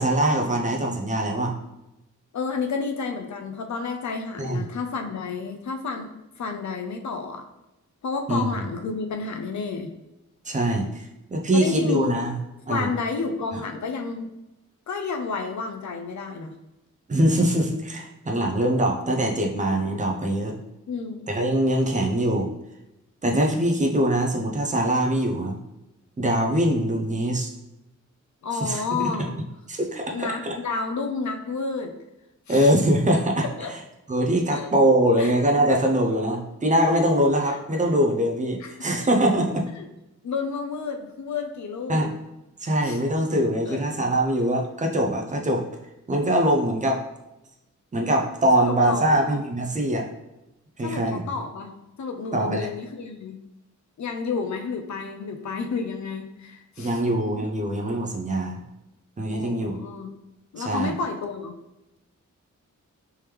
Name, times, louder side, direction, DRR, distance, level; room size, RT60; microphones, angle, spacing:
voice 1, 0.0-1.5 4.4-4.6 8.3-8.5 10.5-10.9 11.3-12.4 12.7-12.9 17.1-20.5 21.3-22.5 23.2-25.6 26.2-27.5 28.6-28.8 29.7-30.5 32.5-33.4 34.1-39.7 41.9-42.1 42.6-45.6 46.1-47.0 47.9-50.1 50.8-51.2 52.3-52.7 56.8-58.6 59.2-59.8 60.6-60.9, right 1 dB, 25° right, 1 dB, 0.5 m, -23 dB
voice 2, 2.3-7.5 8.0-9.9 11.5-12.2 12.7-14.3 14.9-16.5 20.9-21.2 28.4-29.4 30.1-31.9 32.5-32.7 33.6-33.7 34.5-34.7 35.2-35.3 37.5-37.6 38.1-38.2 38.6-38.7 39.8-39.9 40.2-42.0 42.8-43.0 43.7-43.8 48.6-49.3 50.8-51.7 52.0-53.4 54.0-57.1 59.3-60.1 60.5-61.6, left 4 dB, 65° left, 4 dB, 0.5 m, -30 dB
3.4 x 3.0 x 3.2 m, 0.94 s
wide cardioid pair, 150°, 31 cm